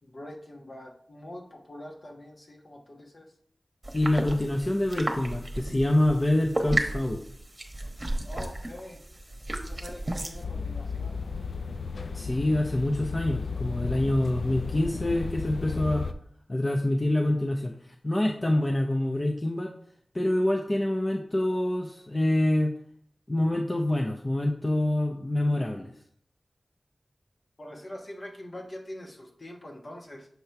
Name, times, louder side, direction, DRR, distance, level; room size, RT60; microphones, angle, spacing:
voice 1, 0.0-3.3 8.2-9.0 9.6-11.1 27.6-30.3, left 1 dB, 55° left, 0 dB, 1.2 m, -43 dB
sound 1, 3.8-10.4, right 1 dB, 30° right, 1.0 m, -33 dB
voice 2, 3.9-7.2 12.1-16.0 16.5-17.7 18.0-19.7 20.1-22.7 23.3-25.9, left 1 dB, 30° left, 1 dB, 0.6 m, -26 dB
sound 2, 10.4-16.1, left 5 dB, 85° left, 0.4 m, -34 dB
6.7 x 3.0 x 5.7 m, 0.64 s
wide cardioid pair, 85°, 0 cm